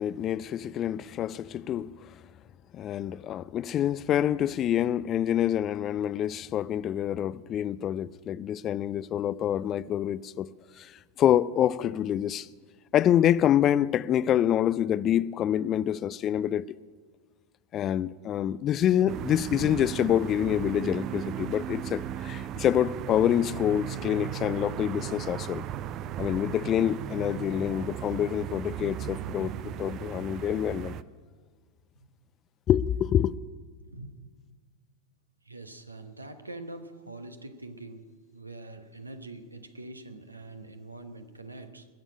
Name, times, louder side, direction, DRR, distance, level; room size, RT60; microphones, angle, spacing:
voice 1, 0.0-2.0 2.7-10.5 10.8-10.9 11.2-12.5 12.9-16.8 17.7-25.6 26.2-31.0 32.7-33.3, left 10 dB, 30° left, 0.3 m, -26 dB
sound 1, 19.1-31.0, right 10 dB, 35° right, 0.4 m, -36 dB
voice 2, 35.4-38.0 38.3-41.9, right 2 dB, 80° right, 1.2 m, -44 dB
20.5 x 7.1 x 8.7 m
figure-of-eight pair, 90°, 0 cm